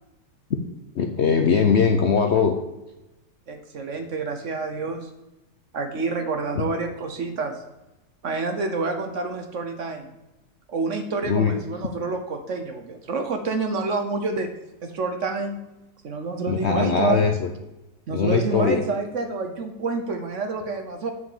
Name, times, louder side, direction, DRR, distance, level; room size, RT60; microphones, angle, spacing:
voice 1, 0.9-2.6 6.6-6.7 11.2-11.6 16.5-17.5 18.1-18.8, left 6 dB, 60° left, 5 dB, 0.7 m, -21 dB
voice 2, 3.5-5.1 5.7-7.6 8.2-10.1 10.7-14.5 14.8-15.6 16.0-17.2 18.1-21.1, right 3 dB, 55° right, 6 dB, 1.0 m, -28 dB
7.4 x 6.2 x 7.2 m, 0.98 s
omnidirectional pair, 1.8 m